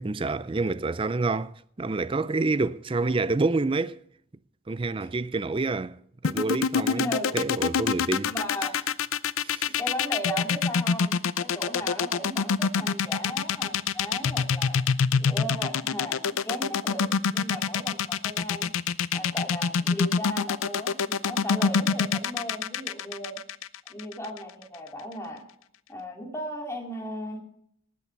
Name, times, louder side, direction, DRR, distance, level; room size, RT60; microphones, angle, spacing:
voice 1, 0.0-4.0 4.7-6.0 6.2-7.1 7.3-8.3 9.4-9.8, right 3 dB, 25° right, 0.4 m, -28 dB
sound 1, 6.2-24.4, left 6 dB, 85° left, 0.5 m, -25 dB
voice 2, 6.9-7.3 8.3-8.7 9.6-14.8 15.2-18.7 19.1-23.4 23.9-25.4 25.9-27.4, equal, 15° left, 2.7 m, -36 dB
19.0 x 8.5 x 4.5 m
head